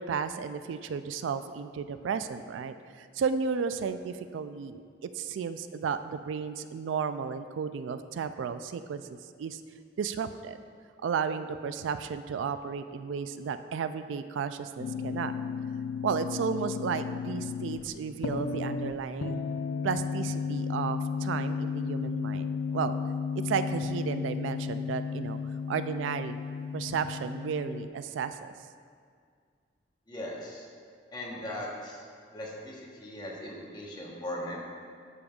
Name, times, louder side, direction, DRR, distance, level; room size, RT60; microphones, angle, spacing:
voice 1, 0.0-9.0 9.4-9.6 10.0-10.6 11.0-15.3 16.0-19.4 19.8-23.0 23.4-25.4 25.7-26.4 26.7-28.5, right 6 dB, 85° right, 11 dB, 0.3 m, -33 dB
sound 1, 14.8-27.9, left 5 dB, 90° left, 0.3 m, -34 dB
voice 2, 30.1-30.7 31.1-32.0 32.3-34.6, left 1 dB, 25° left, -3 dB, 1.0 m, -39 dB
12.0 x 5.2 x 2.3 m, 2.1 s
head